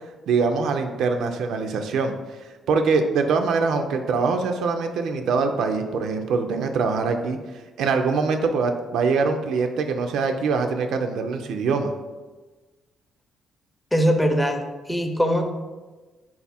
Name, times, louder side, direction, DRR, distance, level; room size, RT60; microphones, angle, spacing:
voice 1, 0.3-2.1 2.7-7.4 7.8-11.9, right 4 dB, 80° right, 5 dB, 0.3 m, -23 dB
voice 2, 13.9-15.5, equal, 5° left, 5 dB, 0.4 m, -22 dB
3.8 x 2.4 x 4.1 m, 1.3 s
cardioid pair, 90°, 0 cm